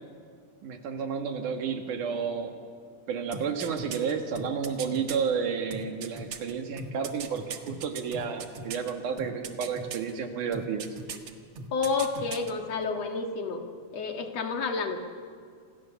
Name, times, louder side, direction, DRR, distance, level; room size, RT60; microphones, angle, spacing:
voice 1, 0.6-2.6 3.1-10.9, right 6 dB, 80° right, 5 dB, 3.5 m, -31 dB
sound 1, 3.3-5.2 5.7-8.9 9.2-10.1 10.5-11.3 11.6-12.5 12.8-12.9, right 5 dB, 55° right, 2.4 m, -39 dB
voice 2, 11.7-13.6 13.9-15.0, left 4 dB, 60° left, 4 dB, 2.8 m, -30 dB
28.5 x 27.5 x 7.2 m, 2.1 s
omnidirectional pair, 3.5 m